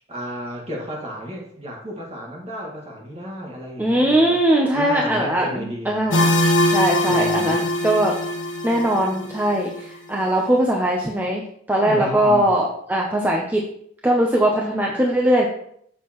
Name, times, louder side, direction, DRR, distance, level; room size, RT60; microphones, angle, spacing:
voice 1, 0.0-4.4 4.7-6.1 7.1-7.7 11.9-12.6, equal, 30° right, -2 dB, 1.9 m, -33 dB
voice 2, 3.8-6.3 6.7-8.2 8.6-11.4 11.7-13.6 14.0-15.5, right 1 dB, 10° right, -1 dB, 0.7 m, -20 dB
sound 1, 6.1-9.8, left 1 dB, 75° left, 1.0 m, -22 dB
7.3 x 6.5 x 3.1 m, 0.68 s
head